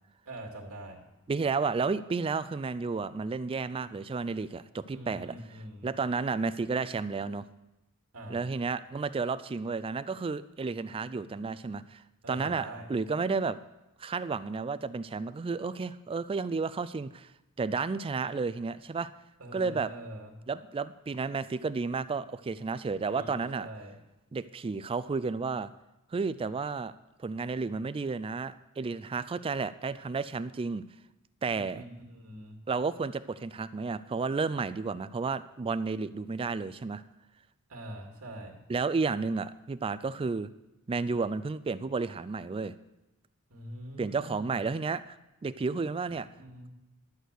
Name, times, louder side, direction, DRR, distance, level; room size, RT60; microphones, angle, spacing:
voice 1, 0.3-1.0 4.9-5.9 8.1-8.5 12.2-12.9 19.4-20.3 23.1-24.0 31.5-32.6 37.7-38.6 43.5-44.5 46.3-46.7, right 1 dB, 75° right, 1 dB, 2.3 m, -44 dB
voice 2, 1.3-5.4 5.8-7.5 8.3-12.0 12.3-13.6 14.0-17.3 17.6-19.1 19.5-19.9 20.5-23.7 24.3-25.7 26.1-26.9 27.2-30.8 31.4-31.8 32.7-37.0 38.7-40.5 40.9-42.7 44.0-45.2 45.4-46.3, right 4 dB, 25° right, 14 dB, 0.3 m, -32 dB
11.5 x 6.4 x 8.1 m, 0.98 s
head